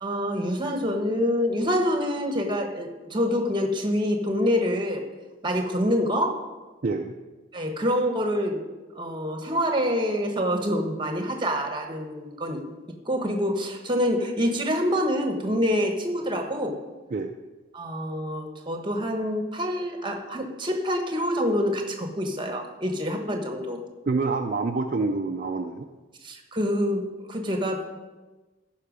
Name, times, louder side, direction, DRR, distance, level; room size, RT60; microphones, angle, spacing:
voice 1, 0.0-5.0 5.4-6.5 7.5-8.6 8.9-12.6 13.0-16.8 17.7-23.8 26.2-27.9, equal, 25° right, 3 dB, 1.2 m, -26 dB
voice 2, 6.8-7.2 17.1-17.3 24.1-25.9, right 3 dB, 40° right, 3 dB, 0.5 m, -27 dB
14.5 x 5.7 x 5.1 m, 1.2 s
head